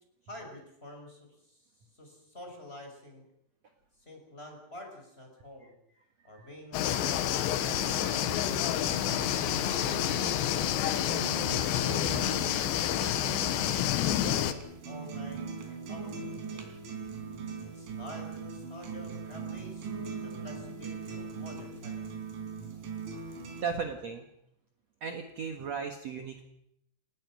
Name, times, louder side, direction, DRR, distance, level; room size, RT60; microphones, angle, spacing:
voice 1, 0.2-3.2 4.1-5.7 6.2-8.1 11.6-16.7 17.6-21.9, left 1 dB, 10° left, 2 dB, 5.8 m, -48 dB
sound 1, 6.7-14.5, left 11 dB, 75° left, 3.4 m, -29 dB
sound 2, 7.6-23.6, right 5 dB, 80° right, 5.7 m, -41 dB
voice 2, 23.6-24.2 25.0-26.5, right 6 dB, 60° right, 5 dB, 1.7 m, -36 dB
29.0 x 19.5 x 6.3 m, 0.77 s
omnidirectional pair, 5.4 m